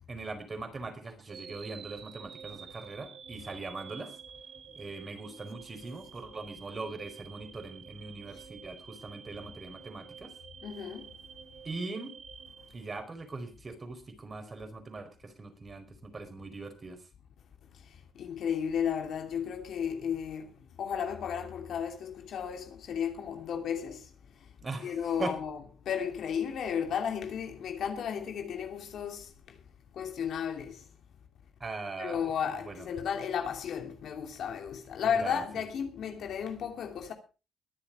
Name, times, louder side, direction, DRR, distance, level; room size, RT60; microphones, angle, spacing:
voice 1, 0.1-4.2 4.8-10.3 11.6-12.1 12.7-17.0 24.6-25.3 31.6-32.2 32.6-32.9 35.1-35.4, right 3 dB, 30° right, 4.6 m, -41 dB
sound 1, 1.3-13.4, right 7 dB, 55° right, 1.5 m, -49 dB
voice 2, 10.6-11.1 17.7-24.5 24.8-25.6 25.8-29.6 29.9-30.9 32.0-37.1, left 7 dB, 70° left, 2.7 m, -34 dB
22.5 x 7.5 x 4.8 m
cardioid pair, 90°, 0 cm